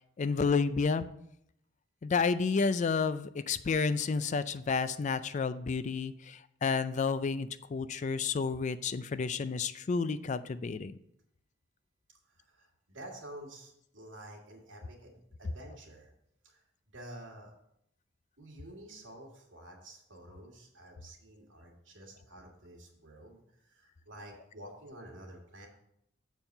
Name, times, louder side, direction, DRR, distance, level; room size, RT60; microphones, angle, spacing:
voice 1, 0.2-1.1 2.0-11.0, left 5 dB, 40° left, 13 dB, 0.4 m, -30 dB
voice 2, 12.3-16.1 16.4-17.5 18.4-25.7, right 1 dB, 85° right, -1 dB, 2.2 m, -50 dB
7.2 x 4.5 x 6.5 m, 0.75 s
head